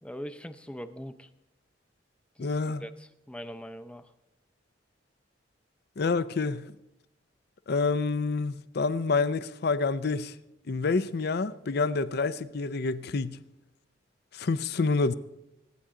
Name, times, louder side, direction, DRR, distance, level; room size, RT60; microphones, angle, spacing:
voice 1, 0.0-1.3 2.4-4.1, equal, 5° left, 0.5 m, -42 dB
voice 2, 2.4-2.8 6.0-6.7 7.7-10.3 10.7-13.4 14.3-15.1, left 4 dB, 55° left, 0.5 m, -28 dB
24.5 x 9.1 x 3.8 m
head